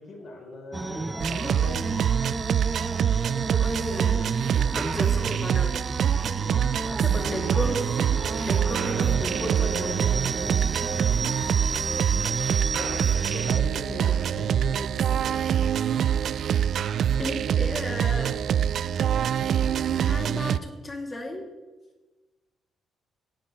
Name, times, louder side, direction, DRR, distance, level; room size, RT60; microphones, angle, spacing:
voice 1, 0.0-2.0 6.3-7.2 12.7-15.0 16.1-16.2, left 2 dB, 60° left, -2 dB, 4.5 m, -39 dB
sound 1, 0.7-13.6, right 3 dB, 20° right, 0.6 m, -32 dB
sound 2, 1.2-20.6, right 9 dB, 65° right, 0.3 m, -25 dB
voice 2, 3.5-4.4 4.8-5.8 7.0-7.9 8.4-10.0 17.2-18.4 19.9-21.5, left 1 dB, 25° left, 2 dB, 2.3 m, -33 dB
15.5 x 8.8 x 3.8 m, 1.2 s
cardioid pair, 90°, 0 cm